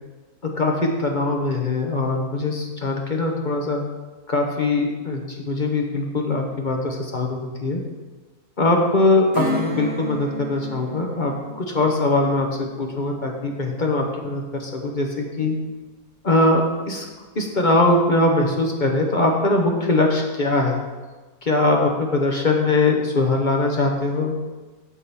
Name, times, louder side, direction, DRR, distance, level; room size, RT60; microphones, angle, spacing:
voice 1, 0.4-3.8 4.3-7.8 8.6-15.6 16.2-17.1 17.4-20.8 21.4-24.3, left 2 dB, 35° left, 1 dB, 1.0 m, -21 dB
Acoustic guitar / Strum, 9.3-15.5 15.9-16.0, equal, 70° right, 1.7 m, -34 dB
8.6 x 3.8 x 6.9 m, 1.2 s
omnidirectional pair, 1.6 m